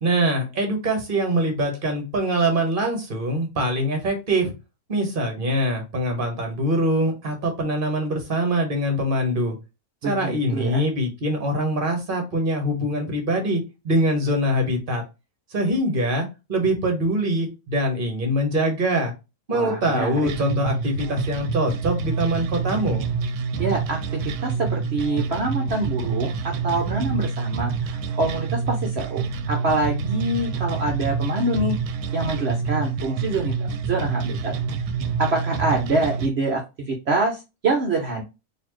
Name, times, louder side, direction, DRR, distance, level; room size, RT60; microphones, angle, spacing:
voice 1, 0.0-4.5 4.9-9.5 10.0-15.0 15.5-19.1 19.5-23.0, right 1 dB, 40° right, 3 dB, 1.3 m, -23 dB
voice 2, 10.0-10.8 19.5-20.3 23.6-31.8 32.1-34.5 35.2-36.6 36.9-38.2, right 2 dB, 55° right, 2 dB, 0.9 m, -25 dB
sound 1, 20.3-36.3, right 5 dB, 80° right, 1.1 m, -27 dB
4.1 x 2.7 x 3.0 m, 0.26 s
omnidirectional pair, 1.6 m